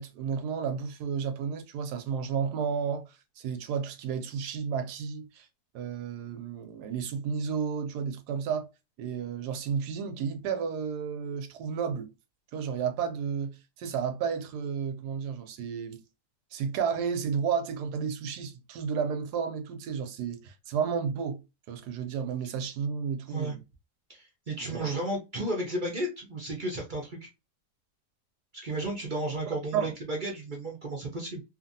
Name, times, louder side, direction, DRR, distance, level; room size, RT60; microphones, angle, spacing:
voice 1, 0.0-5.5 5.7-8.7 9.0-12.1 12.5-16.0 16.5-21.4 21.7-23.6 24.6-24.9 29.7-29.9, right 6 dB, 90° right, 1.2 m, -32 dB
voice 2, 24.1-27.3 28.6-31.4, right 1 dB, 50° right, 0.5 m, -33 dB
2.8 x 2.5 x 2.6 m
omnidirectional pair, 1.7 m